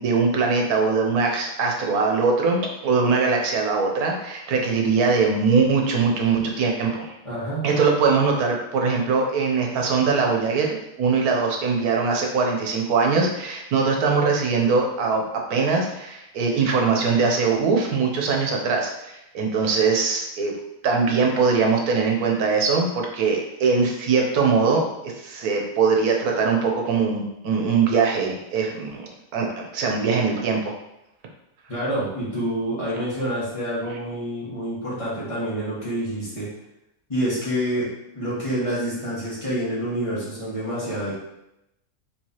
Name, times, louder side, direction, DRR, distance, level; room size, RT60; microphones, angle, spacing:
voice 1, 0.0-7.1 7.6-15.2 15.5-20.5 20.8-30.7, right 4 dB, 85° right, 1 dB, 1.3 m, -22 dB
voice 2, 7.2-7.6 31.7-36.5 37.1-41.1, equal, 20° left, -9 dB, 1.6 m, -27 dB
4.7 x 3.2 x 2.9 m, 0.86 s
omnidirectional pair, 1.5 m